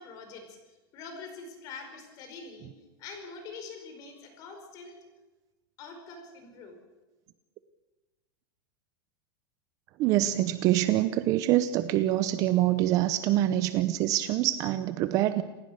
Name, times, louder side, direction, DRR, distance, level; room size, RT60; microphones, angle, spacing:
voice 1, 0.0-2.7 3.0-5.0 5.8-6.8, left 4 dB, 30° left, 6 dB, 4.9 m, -44 dB
voice 2, 10.0-15.4, right 14 dB, 30° right, 12 dB, 0.8 m, -25 dB
28.5 x 16.0 x 6.6 m, 1.2 s
supercardioid pair, 175°, 12 cm